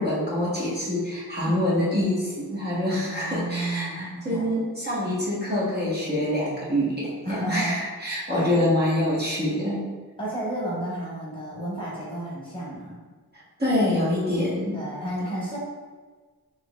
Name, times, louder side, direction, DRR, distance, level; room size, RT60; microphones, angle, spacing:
voice 1, 0.0-9.8 13.6-14.8, left 1 dB, 25° right, -8 dB, 1.2 m, -25 dB
voice 2, 2.9-4.5 7.2-7.8 8.3-8.6 10.2-13.0 14.7-15.6, right 1 dB, 15° left, -7 dB, 1.2 m, -32 dB
5.9 x 3.0 x 2.4 m, 1.4 s
wide cardioid pair, 120°, 37 cm